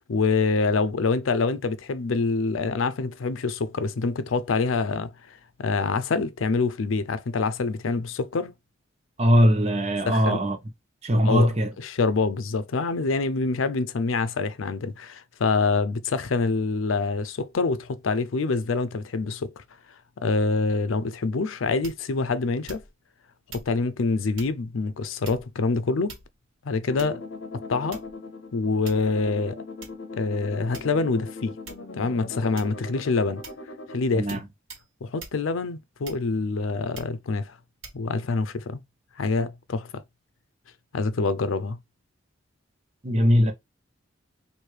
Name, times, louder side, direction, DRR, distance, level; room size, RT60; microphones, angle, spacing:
voice 1, 0.1-8.5 10.1-10.4 11.2-11.5 11.8-19.6 20.2-22.8 23.5-26.2 26.6-27.2 27.7-28.0 28.5-29.6 30.2-31.6 31.9-33.4 33.9-34.4 35.0-37.6 37.9-38.8 39.2-40.0 40.9-41.8, left 4 dB, 85° left, 0.5 m, -26 dB
voice 2, 9.2-10.6 11.0-11.7 34.1-34.4 43.0-43.5, equal, 35° right, 0.9 m, -20 dB
sound 1, 21.8-22.2 22.7-23.1 23.5-23.7 24.4-24.6 25.2-25.6 26.1-26.5 27.0-27.3 27.9-28.3 28.9-29.2 29.8-30.0 30.7-31.2 31.7-31.9 32.6-32.9 33.4-33.7 34.3-34.4 34.7-34.9 35.2-35.4 36.0-36.4 36.9-37.2 37.8-38.0, right 3 dB, 90° right, 1.5 m, -43 dB
sound 2, 26.9-34.0, left 3 dB, 65° left, 0.9 m, -39 dB
3.2 x 2.6 x 4.5 m
head